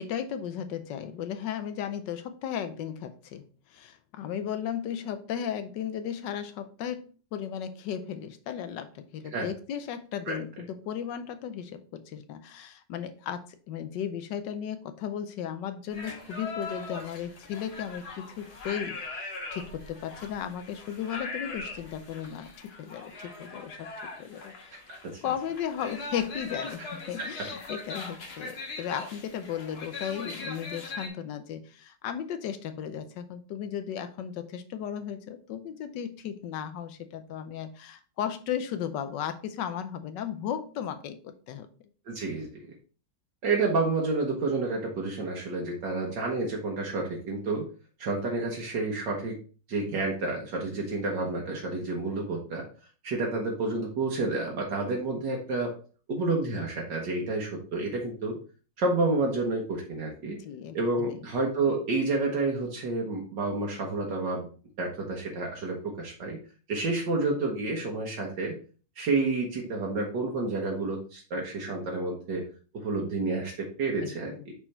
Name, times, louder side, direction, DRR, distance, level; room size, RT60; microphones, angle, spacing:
voice 1, 0.0-24.5 25.2-41.7 60.4-61.2 74.0-74.4, left 9 dB, 75° left, 10 dB, 1.3 m, -35 dB
sound 1, 15.9-31.1, left 3 dB, 60° left, 1.8 m, -40 dB
voice 2, 24.9-25.2 42.1-42.6 43.4-47.7 48.0-49.4 49.7-52.6 53.0-55.7 56.1-58.4 58.8-60.4 60.7-64.5 64.8-66.4 66.7-68.5 69.0-72.4 72.7-74.5, right 3 dB, 70° right, -1 dB, 1.9 m, -29 dB
5.6 x 4.5 x 4.2 m, 0.38 s
omnidirectional pair, 2.0 m